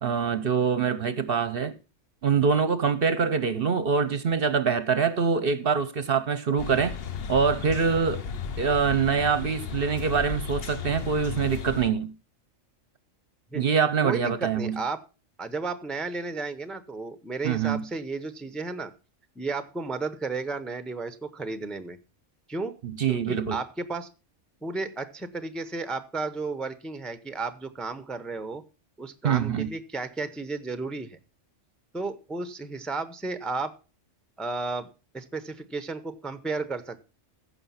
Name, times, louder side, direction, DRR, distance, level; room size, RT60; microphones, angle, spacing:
voice 1, 0.0-1.7 2.2-6.9 7.3-8.2 8.6-12.1 13.5-14.8 17.4-17.8 22.8-23.6 29.2-29.7, right 6 dB, 55° right, 0.8 m, -24 dB
sound 1, 6.6-11.9, left 6 dB, 55° left, 1.0 m, -34 dB
voice 2, 14.0-15.0 15.4-18.9 19.4-22.0 22.5-22.7 23.1-24.1 24.6-28.6 29.0-31.2 31.9-33.7 34.4-34.9 35.1-37.1, right 3 dB, ahead, 0.7 m, -33 dB
15.0 x 5.8 x 5.6 m
omnidirectional pair, 1.3 m